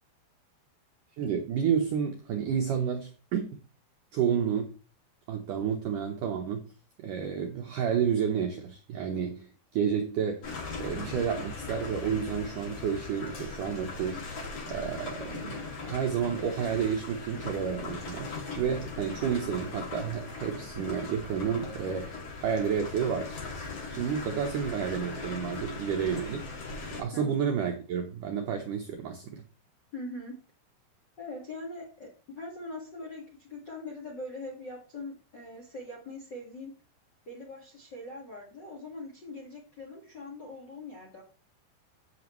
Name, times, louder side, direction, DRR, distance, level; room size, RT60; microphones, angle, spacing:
voice 1, 1.2-3.4 4.1-4.7 5.3-6.6 7.0-9.5 9.7-10.5 10.8-14.2 14.7-23.4 23.9-26.5 26.9-29.4, right 7 dB, 90° right, 3 dB, 1.8 m, -30 dB
sound 1, 10.4-27.0, left 4 dB, 40° left, 3.0 m, -39 dB
voice 2, 29.9-30.4 31.2-36.7 37.2-41.2, left 2 dB, 60° left, 0 dB, 1.1 m, -42 dB
15.0 x 6.2 x 3.1 m, 0.36 s
omnidirectional pair, 5.3 m